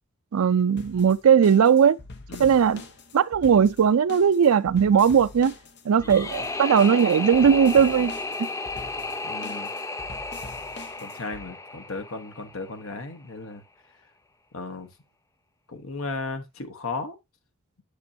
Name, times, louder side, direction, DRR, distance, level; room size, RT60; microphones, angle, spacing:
voice 1, 0.3-2.0 2.4-2.8 3.1-5.5 5.9-8.1 8.4-8.5, right 7 dB, 85° right, 0.4 m, -18 dB
sound 1, 0.8-11.5, left 3 dB, 55° left, 1.0 m, -44 dB
sound 2, 6.0-13.0, left 3 dB, 15° left, 0.5 m, -33 dB
voice 2, 9.2-9.7 11.0-13.6 14.5-14.9 15.7-17.2, left 3 dB, 80° left, 1.1 m, -35 dB
8.2 x 6.1 x 2.7 m
head